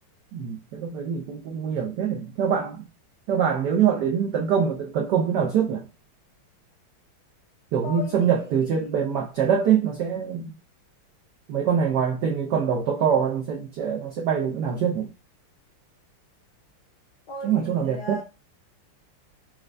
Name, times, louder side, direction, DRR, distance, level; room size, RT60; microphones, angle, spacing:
voice 1, 0.3-2.8 3.3-5.8 7.7-10.5 11.5-15.1 17.4-18.2, right 7 dB, 90° right, 0.9 m, -24 dB
voice 2, 7.8-9.1 17.3-18.2, left 2 dB, 70° left, 1.0 m, -38 dB
4.3 x 2.1 x 2.5 m
omnidirectional pair, 2.4 m